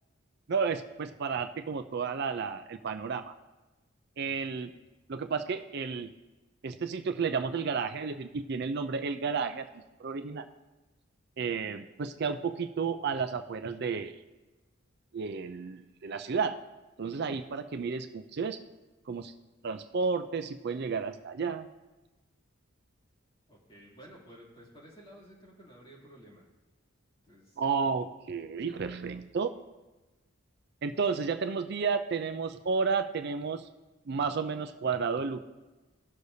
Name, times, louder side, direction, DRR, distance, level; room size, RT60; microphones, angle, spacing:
voice 1, 0.5-3.3 4.2-4.7 5.1-6.1 6.6-9.7 10.0-10.5 11.4-14.1 15.1-16.6 17.0-18.6 19.1-19.3 19.6-21.7 27.6-29.5 30.8-33.7 34.1-35.4, right 5 dB, 55° right, 9 dB, 0.4 m, -32 dB
voice 2, 4.2-4.7 23.5-26.5 27.2-27.6, right 1 dB, 25° left, -5 dB, 2.7 m, -53 dB
18.0 x 6.5 x 2.7 m, 1.1 s
head